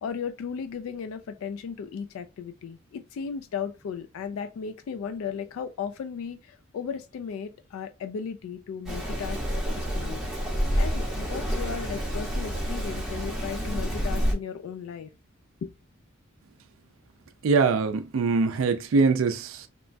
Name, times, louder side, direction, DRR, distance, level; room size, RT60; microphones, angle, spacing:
voice 1, 0.0-10.2 10.7-15.1 15.6-15.7, left 6 dB, 75° left, 0.3 m, -36 dB
Rain, 8.9-14.3, equal, 5° right, 0.8 m, -28 dB
voice 2, 17.4-19.7, right 4 dB, 65° right, 0.4 m, -23 dB
3.0 x 2.2 x 2.5 m
head